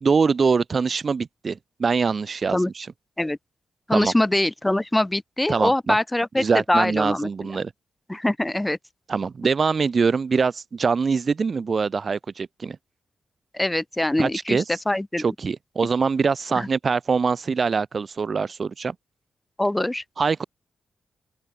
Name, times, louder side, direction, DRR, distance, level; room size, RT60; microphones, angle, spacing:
voice 1, 0.0-2.9 3.9-4.1 5.5-6.0 6.4-7.7 9.1-12.8 14.2-14.6 15.2-18.9 20.2-20.4, right 5 dB, 55° right, 1.9 m, -23 dB
voice 2, 3.9-7.5 8.1-8.8 13.5-15.2 16.5-16.7 19.6-20.0, left 1 dB, 15° left, 5.3 m, -23 dB
open air
supercardioid pair, 45°, 0 cm